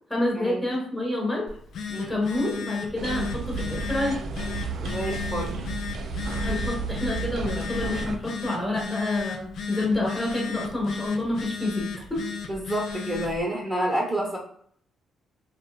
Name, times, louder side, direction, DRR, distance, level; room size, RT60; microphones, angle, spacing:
voice 1, 0.1-1.5 2.0-4.2 6.4-12.2, left 1 dB, 10° left, -3 dB, 1.0 m, -28 dB
Telephone, 1.5-13.4, left 6 dB, 65° left, 0.4 m, -35 dB
sound 1, 3.0-8.2, right 4 dB, 70° right, 0.4 m, -32 dB
voice 2, 4.8-5.6 12.5-14.4, right 1 dB, 15° right, -2 dB, 0.9 m, -29 dB
2.9 x 2.1 x 2.3 m, 0.62 s
cardioid pair, 90°, 0 cm